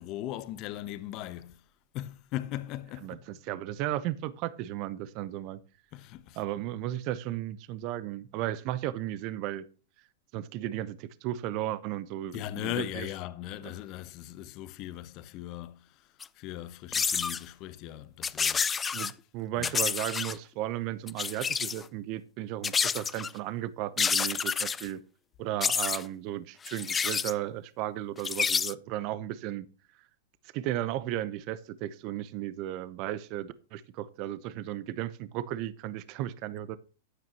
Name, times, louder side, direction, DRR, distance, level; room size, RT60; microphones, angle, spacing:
voice 1, 0.0-1.6 1.9-3.2 5.9-6.4 12.3-16.1 16.4-18.9 19.6-19.8, left 13 dB, 40° left, 1.0 m, -39 dB
voice 2, 3.0-5.6 6.4-9.6 10.3-13.1 13.6-13.7 18.9-25.0 25.4-29.6 30.5-36.8, right 13 dB, 45° right, 0.8 m, -35 dB
sound 1, 16.2-16.3 16.9-17.4 18.2-19.1 19.6-20.3 21.1-21.8 22.6-23.3 24.0-24.9 25.6-26.0 26.6-27.3 28.2-28.7, left 6 dB, 15° left, 0.4 m, -29 dB
13.0 x 9.5 x 2.9 m
hypercardioid pair, 125°, 0 cm